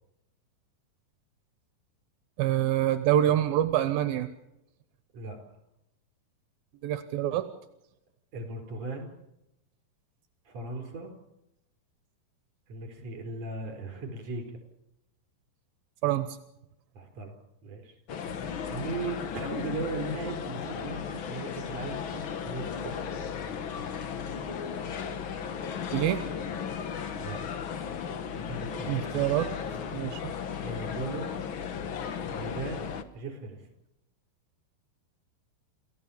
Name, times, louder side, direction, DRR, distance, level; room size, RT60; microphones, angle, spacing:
voice 1, 2.4-4.3 6.8-7.5 16.0-16.4 25.9-26.2 28.9-29.5 29.9-30.3, right 12 dB, 80° right, 11 dB, 2.8 m, -26 dB
voice 2, 8.3-9.1 10.5-11.1 12.7-14.6 16.9-17.4 17.6-18.0 18.7-23.3 27.2-27.4 28.3-29.1 30.6-31.3 32.3-32.9 33.1-33.7, right 3 dB, 45° right, 5 dB, 5.6 m, -37 dB
sound 1, 18.1-33.0, left 7 dB, 70° left, 1.2 m, -35 dB
28.5 x 16.0 x 7.2 m, 0.87 s
omnidirectional pair, 4.2 m